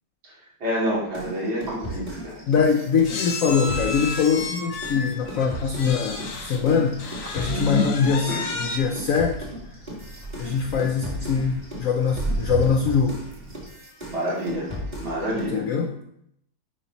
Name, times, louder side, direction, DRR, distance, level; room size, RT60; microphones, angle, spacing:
voice 1, 0.6-2.4 7.5-7.9 8.2-8.4 14.1-14.7 15.0-15.6, equal, 80° right, -8 dB, 3.5 m, -27 dB
sound 1, 1.1-8.2 8.5-15.6, equal, 25° right, 1.7 m, -37 dB
sound 2, 1.6-1.7 1.9-2.1 3.0-6.6 7.0-8.8, left 3 dB, 50° left, 1.0 m, -33 dB
voice 2, 2.5-9.5 10.4-13.2 15.4-16.0, left 6 dB, 75° left, 3 dB, 0.7 m, -23 dB
sound 3, 4.7-13.7, right 2 dB, 50° right, 0.7 m, -36 dB
10.0 x 4.6 x 2.9 m, 0.74 s
omnidirectional pair, 2.1 m